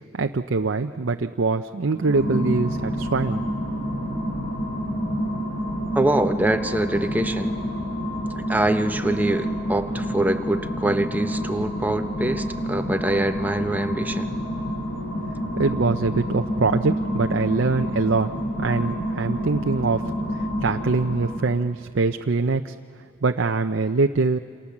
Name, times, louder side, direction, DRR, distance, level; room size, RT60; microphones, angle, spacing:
voice 1, 0.2-3.4 15.6-18.3 18.6-22.7 23.2-24.4, right 3 dB, 65° right, 6 dB, 0.6 m, -23 dB
sound 1, 1.9-21.6, equal, 55° left, 7.2 m, -28 dB
Bass guitar, 2.2-8.4, right 2 dB, 20° left, 2.2 m, -39 dB
voice 2, 5.9-7.5 8.5-14.3, right 1 dB, 10° right, 7 dB, 0.8 m, -24 dB
28.0 x 27.5 x 7.3 m, 2.2 s
head